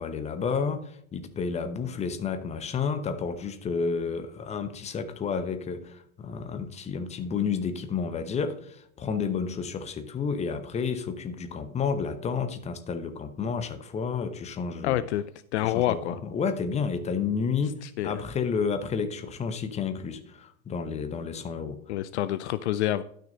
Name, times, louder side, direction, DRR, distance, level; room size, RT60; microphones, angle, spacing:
voice 1, 0.0-15.0 15.6-17.8 18.0-21.8, left 5 dB, 15° left, 0.9 m, -31 dB
voice 2, 14.8-15.2 15.5-16.2 17.8-18.1 21.9-23.0, left 13 dB, 55° left, 0.5 m, -27 dB
11.5 x 6.5 x 4.0 m
hypercardioid pair, 115°, 41 cm